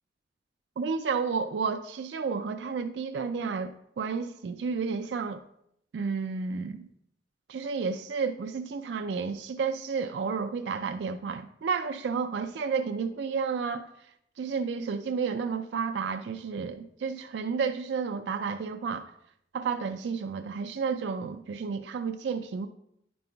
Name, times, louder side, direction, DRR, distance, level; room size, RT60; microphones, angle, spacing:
voice 1, 0.8-5.4 5.9-6.9 7.5-13.9 14.4-19.1 19.5-22.7, right 5 dB, 80° right, 0.3 m, -31 dB
9.9 x 5.3 x 2.2 m
head